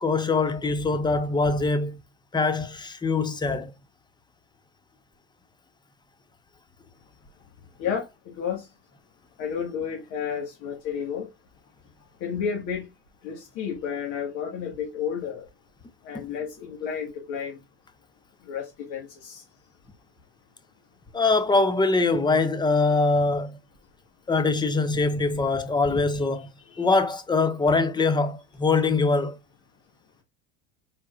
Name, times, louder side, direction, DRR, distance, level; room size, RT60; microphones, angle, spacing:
voice 1, 0.0-2.0 2.3-3.7 21.1-23.6 24.3-26.5 26.8-29.4, left 3 dB, 10° left, 0.8 m, -23 dB
voice 2, 7.8-8.7 9.4-11.3 12.2-12.9 13.2-15.5 16.0-17.6 18.4-19.4 25.9-26.9, left 7 dB, 55° left, 1.8 m, -32 dB
4.9 x 4.2 x 2.4 m
supercardioid pair, 100°, 34 cm